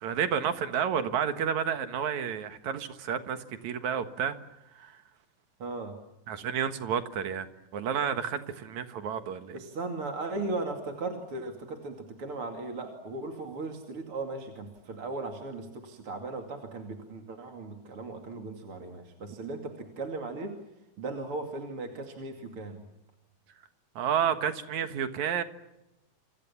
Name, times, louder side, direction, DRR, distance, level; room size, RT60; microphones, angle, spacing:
voice 1, 0.0-4.4 4.8-5.0 6.3-7.5 7.7-9.5 24.0-25.4, right 8 dB, 65° right, 10 dB, 2.8 m, -30 dB
voice 2, 5.6-6.0 9.5-20.6 21.0-22.9, right 3 dB, 45° right, 4 dB, 3.3 m, -37 dB
29.0 x 25.5 x 7.2 m, 0.92 s
omnidirectional pair, 3.7 m